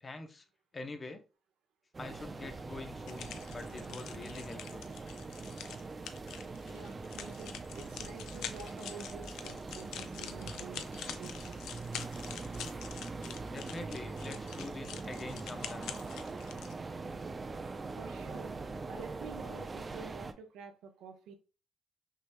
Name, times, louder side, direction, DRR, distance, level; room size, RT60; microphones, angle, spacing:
voice 1, 0.0-0.4 0.7-1.2 2.0-4.9 13.5-15.9, left 3 dB, 30° left, 0.7 m, -45 dB
sound 1, 1.9-20.3, right 3 dB, 30° right, 0.5 m, -42 dB
sound 2, 3.1-16.7, left 9 dB, 85° left, 0.5 m, -46 dB
voice 2, 6.7-10.9 11.2-11.6 17.9-18.6 18.9-21.3, right 5 dB, 85° right, 0.9 m, -49 dB
5.7 x 3.3 x 2.2 m
cardioid pair, 90°, 0 cm